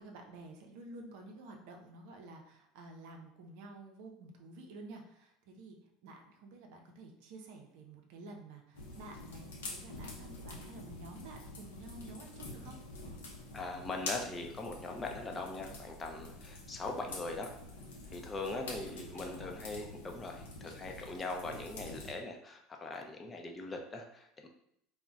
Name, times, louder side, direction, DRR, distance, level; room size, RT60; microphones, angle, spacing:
voice 1, 0.0-5.8 6.0-9.4 9.7-12.8 18.9-19.5, right 2 dB, 70° right, 2 dB, 0.5 m, -51 dB
sound 1, 8.7-22.1, left 2 dB, 85° left, 0.6 m, -46 dB
voice 2, 13.5-17.5 18.1-24.5, left 2 dB, 25° left, 2 dB, 0.5 m, -41 dB
2.2 x 2.1 x 3.8 m, 0.74 s
hypercardioid pair, 80°, 0 cm